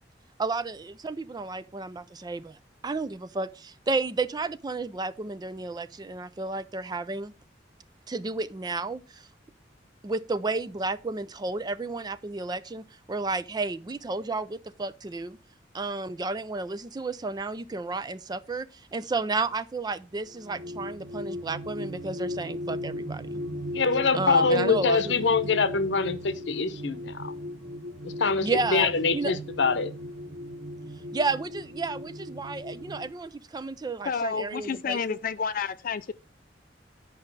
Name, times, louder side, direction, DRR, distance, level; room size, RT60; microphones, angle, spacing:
voice 1, 0.4-2.6 2.8-7.3 8.1-9.3 10.0-15.4 15.7-23.4 24.1-25.3 28.4-29.3 31.1-35.2, right 3 dB, 20° right, 0.4 m, -32 dB
sound 1, 20.3-33.1, left 1 dB, 65° right, 0.8 m, -37 dB
voice 2, 23.7-27.3 28.0-29.9, left 4 dB, 75° left, 0.8 m, -24 dB
voice 3, 34.1-36.1, left 6 dB, 50° left, 0.4 m, -30 dB
10.0 x 5.3 x 4.0 m
head